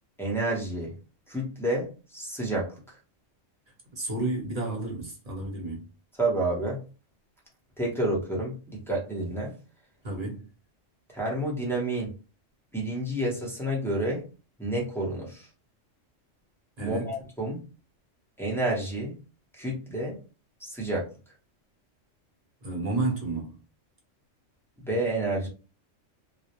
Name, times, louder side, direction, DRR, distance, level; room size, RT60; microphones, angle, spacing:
voice 1, 0.2-0.9 1.3-2.7 6.2-6.8 7.8-8.5 8.9-9.5 11.1-12.1 12.7-14.2 14.6-15.5 16.8-17.6 18.4-19.1 19.6-20.2 20.6-21.1 24.8-25.5, right 1 dB, 5° left, 0.5 m, -29 dB
voice 2, 3.9-5.9 10.0-10.4 16.8-17.1 22.6-23.6, right 2 dB, 35° right, 0.8 m, -31 dB
2.2 x 2.0 x 2.8 m
omnidirectional pair, 1.3 m